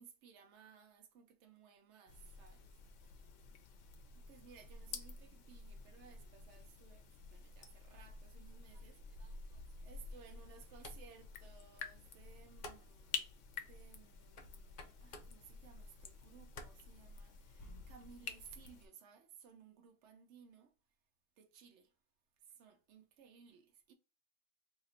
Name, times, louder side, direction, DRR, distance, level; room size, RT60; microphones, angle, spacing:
voice 1, 0.0-2.7 4.1-13.3 13.5-20.8 21.4-22.0 22.4-23.9, right 6 dB, 75° right, 0.9 m, -61 dB
sound 1, 2.1-18.9, left 5 dB, 85° left, 1.0 m, -50 dB
sound 2, 10.0-17.6, left 3 dB, 55° left, 0.7 m, -58 dB
2.8 x 2.5 x 4.0 m
omnidirectional pair, 1.2 m